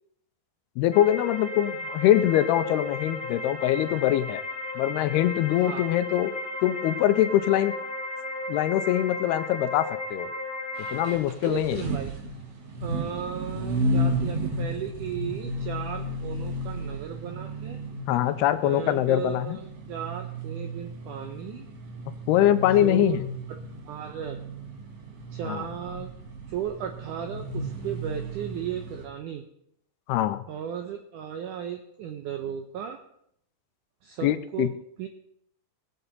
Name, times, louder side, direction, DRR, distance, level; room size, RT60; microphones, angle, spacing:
voice 1, 0.8-4.4 4.8-6.3 6.6-7.7 8.5-10.3 10.8-11.9 18.1-19.6 22.3-23.2 25.4-25.7 30.1-30.4 34.2-34.7, left 12 dB, 85° left, 11 dB, 2.6 m, -23 dB
sound 1, 0.9-11.1, left 2 dB, 25° left, 0.5 m, -35 dB
voice 2, 5.5-5.9 11.4-12.1 12.8-17.8 18.6-21.7 22.8-23.2 23.9-24.4 25.3-26.1 26.5-29.4 30.5-33.0 34.0-34.7 35.0-35.1, right 8 dB, 85° right, 5 dB, 1.8 m, -35 dB
sound 2, 10.8-29.1, right 1 dB, 50° right, 2.3 m, -33 dB
20.0 x 7.9 x 4.0 m, 0.71 s
omnidirectional pair, 4.6 m